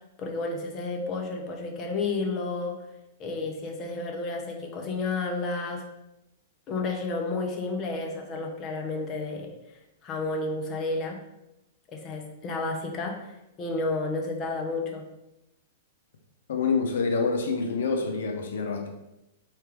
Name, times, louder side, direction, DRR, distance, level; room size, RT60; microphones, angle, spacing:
voice 1, 0.2-2.7 3.2-5.8 6.7-9.5 10.0-11.2 11.9-13.3 13.6-15.1, left 3 dB, 30° left, 2 dB, 0.6 m, -31 dB
voice 2, 16.5-18.9, left 4 dB, 80° left, 4 dB, 0.6 m, -27 dB
4.2 x 2.4 x 3.4 m, 0.88 s
hypercardioid pair, 140°, 0 cm